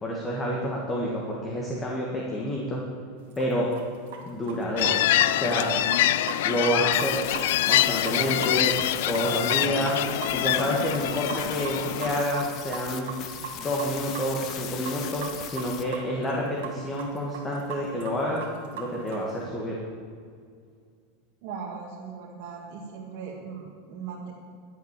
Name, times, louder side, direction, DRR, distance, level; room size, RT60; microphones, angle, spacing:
voice 1, 0.0-2.8 3.4-3.7 4.2-5.7 6.4-7.2 7.6-8.7 9.1-10.0 10.3-13.1 13.5-18.4 18.7-19.7, equal, 15° left, -3 dB, 1.6 m, -29 dB
sound 1, 3.3-4.2 4.5-5.0 5.2-10.0 10.2-10.3 10.6-16.4 16.6-19.4, right 8 dB, 70° right, 2.4 m, -38 dB
sound 2, 4.8-12.2, left 14 dB, 70° left, 0.4 m, -25 dB
sound 3, 6.9-15.8, left 9 dB, 35° left, 0.9 m, -38 dB
voice 2, 21.4-24.3, right 6 dB, 50° right, -6 dB, 2.3 m, -39 dB
11.5 x 8.2 x 7.4 m, 2.2 s
supercardioid pair, 160°, 0 cm